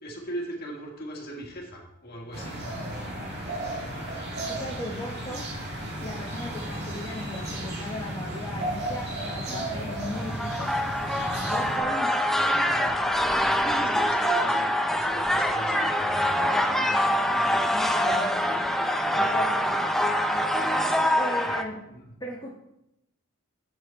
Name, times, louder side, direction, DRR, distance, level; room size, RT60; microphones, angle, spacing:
voice 1, 0.0-2.6 9.4-9.7 12.4-17.0 17.2-17.7 18.0-18.1 19.1-19.4 21.9-22.1, right 1 dB, 45° left, 0 dB, 1.6 m, -40 dB
sound 1, 2.3-11.8, right 1 dB, 50° right, 1.8 m, -34 dB
voice 2, 4.5-5.4 6.0-10.7 11.4-12.1 17.7-18.7 19.1-20.0 21.2-21.8 22.2-22.5, left 1 dB, 20° left, -4 dB, 0.9 m, -37 dB
sound 2, 10.0-21.6, equal, ahead, 0.4 m, -25 dB
7.0 x 6.3 x 4.4 m, 0.84 s
head